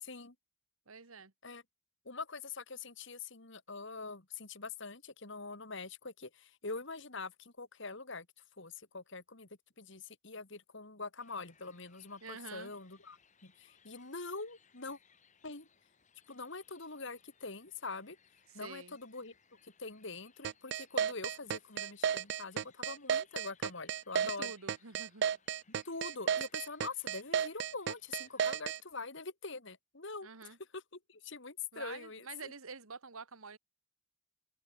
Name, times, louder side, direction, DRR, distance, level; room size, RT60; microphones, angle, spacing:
voice 1, 0.0-0.3 1.4-1.6 2.1-8.3 8.6-9.5 9.8-15.0 15.4-15.7 16.3-18.2 18.5-19.3 19.6-24.5 25.8-32.5, left 4 dB, 55° left, 2.3 m, -44 dB
voice 2, 0.9-1.3 12.2-12.7 18.5-19.0 24.2-25.2 30.2-30.6 31.7-33.6, right 4 dB, 80° right, 1.9 m, -48 dB
sound 1, 11.2-28.6, left 6 dB, 35° left, 3.5 m, -68 dB
sound 2, 20.4-28.8, right 8 dB, 50° right, 0.3 m, -33 dB
open air
head